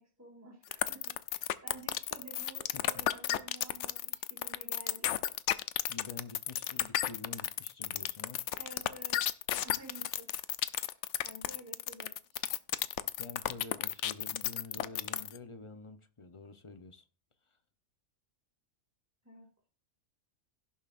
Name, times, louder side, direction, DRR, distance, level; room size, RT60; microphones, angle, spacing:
voice 1, 0.0-5.2 8.5-10.3 10.8-11.0 11.2-12.5 19.2-19.5, right 1 dB, 10° right, 2.0 m, -52 dB
sound 1, 0.7-15.4, left 12 dB, 70° left, 0.9 m, -32 dB
voice 2, 5.9-8.4 13.2-17.0, left 4 dB, 30° left, 0.6 m, -48 dB
17.0 x 7.1 x 2.5 m
omnidirectional pair, 1.4 m